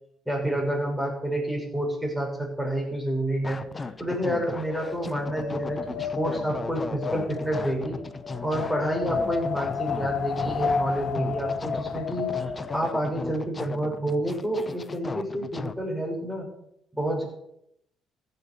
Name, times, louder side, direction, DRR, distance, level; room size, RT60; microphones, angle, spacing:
voice 1, 0.3-8.0 8.4-12.3 12.7-16.5 16.9-17.2, right 1 dB, ahead, -2 dB, 6.2 m, -29 dB
sound 1, 3.4-15.7, left 3 dB, 30° left, 0.8 m, -37 dB
Wind, 3.9-13.1, left 6 dB, 65° left, 1.3 m, -32 dB
15.0 x 6.9 x 6.8 m, 0.76 s
cardioid pair, 90°, 0 cm